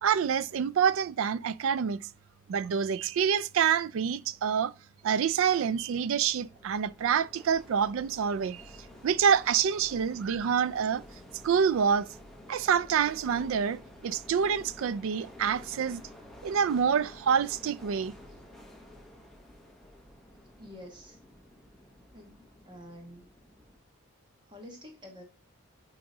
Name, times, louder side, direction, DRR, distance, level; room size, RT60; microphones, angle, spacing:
voice 1, 0.0-2.0 2.5-4.7 5.0-8.6 9.0-11.0 11.4-12.1 12.5-16.0 16.4-18.1, right 7 dB, 60° right, 0.3 m, -27 dB
sound 1, 5.0-23.8, left 1 dB, ahead, 0.9 m, -52 dB
voice 2, 20.6-21.2 22.1-22.4 22.6-23.3 24.4-25.2, left 1 dB, 20° right, 1.3 m, -48 dB
8.6 x 3.0 x 3.8 m
head